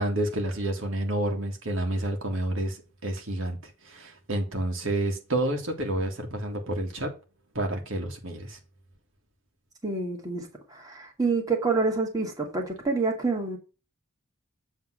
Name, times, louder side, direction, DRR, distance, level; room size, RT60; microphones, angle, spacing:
voice 1, 0.0-3.6 3.8-7.1 7.6-8.6, right 1 dB, 70° right, 1.9 m, -29 dB
voice 2, 9.8-13.6, right 3 dB, 15° right, 1.9 m, -27 dB
7.9 x 3.6 x 6.1 m
head